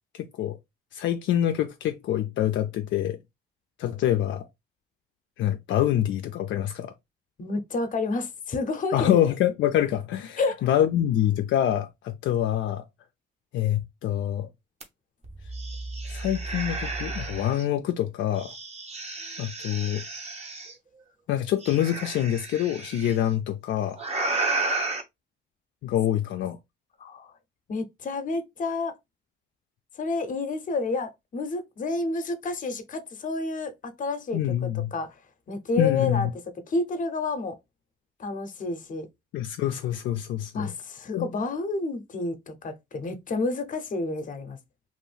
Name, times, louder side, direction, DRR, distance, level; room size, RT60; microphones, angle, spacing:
voice 1, 0.2-0.6 0.9-3.2 3.8-4.5 5.4-6.9 8.9-12.8 13.5-14.5 16.1-18.5 19.4-20.0 21.3-24.0 25.8-26.6 34.3-34.9 35.8-36.3 39.3-40.7 41.1-41.3, left 11 dB, 70° left, 0.4 m, -26 dB
voice 2, 7.4-9.2 10.4-10.6 27.0-27.3 27.7-28.9 30.0-34.4 34.9-35.1 35.5-36.3 36.7-37.6 38.2-39.1 40.5-44.6, left 3 dB, 40° left, 0.7 m, -29 dB
sound 1, 14.8-14.9 15.2-17.6 18.4-20.7 21.6-23.1 24.0-25.0, right 3 dB, 30° right, 0.8 m, -32 dB
2.6 x 2.5 x 3.3 m
cardioid pair, 90°, 20 cm